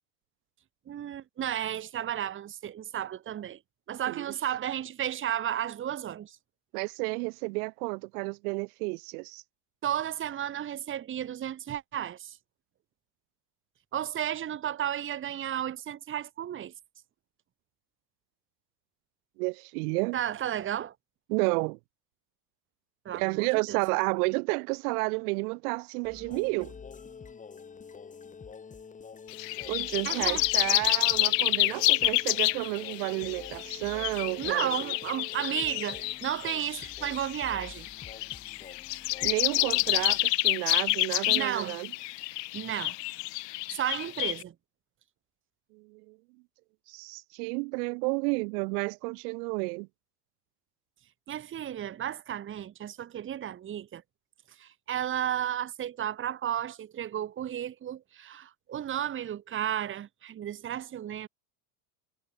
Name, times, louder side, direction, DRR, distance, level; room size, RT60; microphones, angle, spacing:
voice 1, 0.9-3.6 3.9-6.4 9.8-12.4 13.9-16.7 20.1-20.9 23.0-23.8 30.0-30.5 34.4-37.9 41.3-41.8 42.5-43.0 43.7-44.5 51.3-54.0 54.6-61.3, right 10 dB, 25° right, 3.0 m, -33 dB
voice 2, 6.7-9.4 19.4-20.2 21.3-21.8 23.1-26.8 29.7-34.9 39.2-41.9 45.7-46.2 46.9-49.9, right 30 dB, 70° right, 3.5 m, -31 dB
sound 1, 26.0-40.2, left 5 dB, 15° left, 7.6 m, -47 dB
sound 2, 29.3-44.4, left 22 dB, 90° left, 5.2 m, -29 dB
cardioid pair, 165°, 47 cm